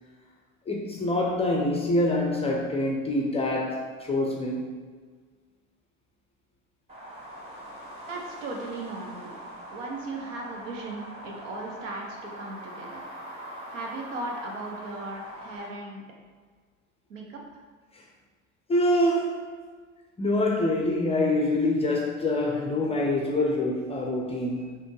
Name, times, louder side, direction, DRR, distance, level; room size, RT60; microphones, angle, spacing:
voice 1, 0.7-4.8 17.9-18.0 18.7-19.4 20.2-24.8, left 1 dB, 15° left, -1 dB, 0.5 m, -25 dB
sound 1, 6.9-15.7, right 1 dB, 15° right, 1.2 m, -42 dB
voice 2, 8.1-9.3 9.7-13.0 13.7-16.0 17.1-17.6, right 2 dB, 65° right, 0 dB, 0.8 m, -37 dB
4.2 x 2.7 x 3.1 m, 1.6 s
figure-of-eight pair, 70°, 40 cm